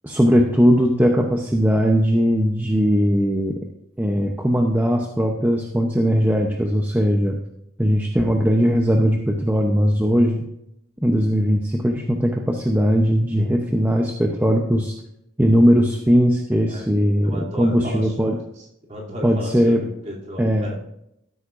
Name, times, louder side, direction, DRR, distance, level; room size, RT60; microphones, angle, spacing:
voice 1, 0.0-3.6 4.0-7.4 7.8-10.4 11.0-14.9 15.4-18.4 19.2-19.8 20.4-20.7, equal, 10° right, 1 dB, 0.7 m, -19 dB
voice 2, 17.2-18.1 18.6-20.8, equal, 35° right, -4 dB, 2.8 m, -34 dB
15.0 x 8.5 x 2.5 m, 0.78 s
head